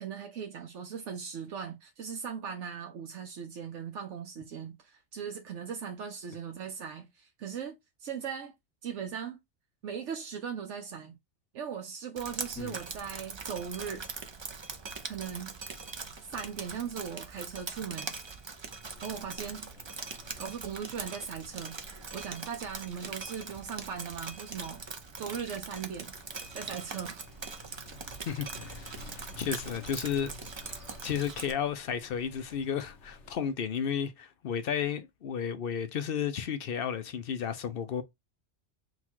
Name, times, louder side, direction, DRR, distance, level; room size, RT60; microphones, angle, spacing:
voice 1, 0.0-8.5 8.8-9.4 9.8-11.2 11.5-14.1 15.1-15.7 16.3-18.2 19.0-19.7 20.4-21.8 22.1-24.8 25.2-26.1 26.5-27.2, right 7 dB, 85° right, 1.1 m, -39 dB
Drip, 12.2-31.5, right 4 dB, 35° right, 0.4 m, -42 dB
sound 1, 18.9-33.4, left 2 dB, 75° left, 1.2 m, -53 dB
voice 2, 28.3-30.3 31.0-38.0, left 8 dB, 60° left, 0.7 m, -33 dB
4.0 x 2.4 x 4.4 m
omnidirectional pair, 1.2 m